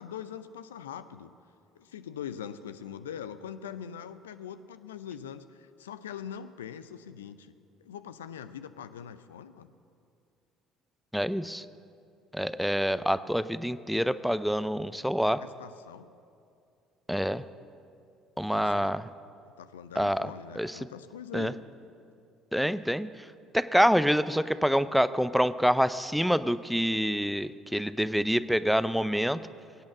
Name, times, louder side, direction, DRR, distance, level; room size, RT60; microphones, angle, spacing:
voice 1, 0.0-1.3 1.8-7.5 7.8-9.7 15.4-16.1 18.5-18.9 19.6-21.6, left 8 dB, 80° left, 12 dB, 0.5 m, -42 dB
voice 2, 11.1-11.6 12.3-15.4 17.1-17.4 18.4-19.1 20.0-20.3 20.6-20.8 21.3-21.5 22.5-23.3 23.5-29.4, equal, ahead, 14 dB, 0.6 m, -26 dB
22.0 x 8.6 x 7.3 m, 2.5 s
figure-of-eight pair, 55°, 0 cm